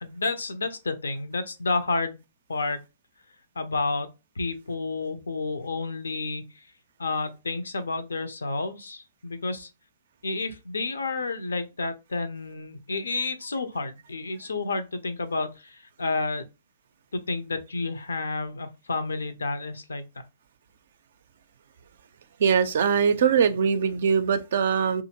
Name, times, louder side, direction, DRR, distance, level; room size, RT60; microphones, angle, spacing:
voice 1, 0.0-2.1 2.5-2.8 3.6-4.1 4.4-6.7 7.0-9.7 10.2-16.4 17.1-20.0, left 3 dB, 75° left, 0.5 m, -30 dB
voice 2, 22.4-25.0, right 6 dB, 55° right, 0.4 m, -22 dB
2.7 x 2.5 x 2.8 m
figure-of-eight pair, 115°, 0 cm